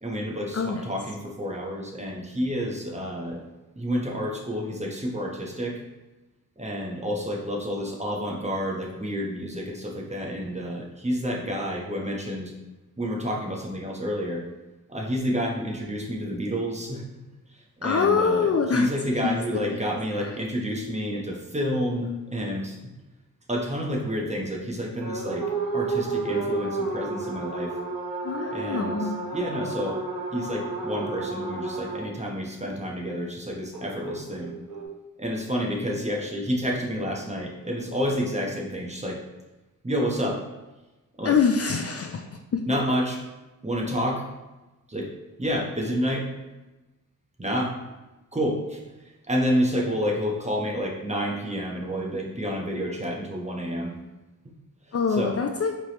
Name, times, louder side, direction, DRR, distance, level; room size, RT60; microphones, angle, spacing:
voice 1, 0.0-3.4 3.8-5.8 6.6-12.5 13.0-14.4 14.9-17.2 17.8-22.9 23.5-25.5 25.7-27.7 28.5-30.0 30.3-34.5 35.2-39.2 39.8-40.4 41.2-41.4 42.7-43.2 43.6-44.2 44.9-45.1 45.4-46.3 47.4-47.7 48.3-48.8 49.3-53.9 55.1-55.4, equal, 20° right, -1 dB, 1.0 m, -29 dB
voice 2, 17.8-18.9 19.2-19.4 19.7-19.8 28.2-29.2 41.2-42.2 42.5-42.6 54.9-55.7, left 5 dB, 45° left, 4 dB, 0.5 m, -24 dB
sound 1, 25.0-32.0 33.7-34.8, right 3 dB, 75° right, 1.0 m, -31 dB
4.6 x 3.4 x 2.9 m, 1.1 s
cardioid pair, 65°, 35 cm